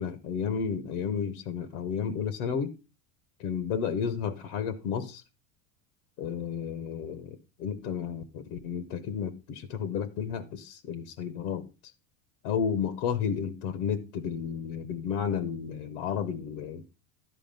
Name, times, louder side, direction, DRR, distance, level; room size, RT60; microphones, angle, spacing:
voice 1, 0.0-2.7 3.4-5.2 6.2-7.3 7.6-11.6 12.4-16.8, left 7 dB, 85° left, 1.1 m, -32 dB
11.5 x 4.8 x 5.2 m
supercardioid pair, 115°, 45 cm